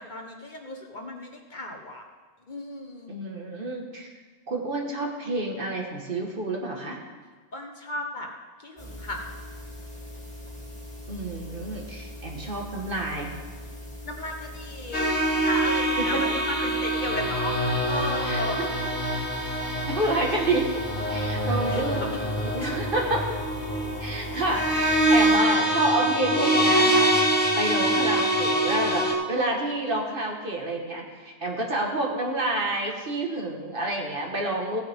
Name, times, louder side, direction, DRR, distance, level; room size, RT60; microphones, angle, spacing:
voice 1, 0.0-2.0 2.5-3.1 7.5-8.3 8.6-9.2 14.0-18.7 19.1-19.2 21.7-22.2 22.6-22.7, left 1 dB, 45° left, 2 dB, 1.2 m, -35 dB
voice 2, 3.1-4.1 4.5-7.0 11.1-13.4 16.1-16.2 18.2-18.7 19.7-20.8 21.1-22.0 22.4-23.3 24.0-27.2 27.6-34.8, right 2 dB, 50° right, 0 dB, 1.8 m, -29 dB
sound 1, 8.8-25.4, left 1 dB, 5° left, 1.9 m, -41 dB
sound 2, 14.9-29.1, right 1 dB, 75° left, 2.1 m, -25 dB
16.5 x 9.0 x 3.6 m, 1.4 s
omnidirectional pair, 1.1 m